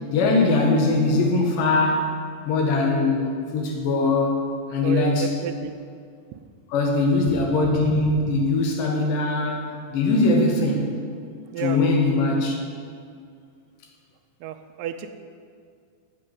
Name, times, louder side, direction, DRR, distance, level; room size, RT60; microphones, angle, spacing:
voice 1, 0.1-2.1 2.5-4.5 4.7-5.3 6.7-10.9 11.6-12.6, left 3 dB, 80° left, 1 dB, 2.9 m, -21 dB
voice 2, 4.8-5.7 6.3-6.5 11.5-11.8 14.4-15.1, right 10 dB, 80° right, 6 dB, 2.1 m, -31 dB
8.2 x 6.4 x 7.6 m, 2.2 s
omnidirectional pair, 3.9 m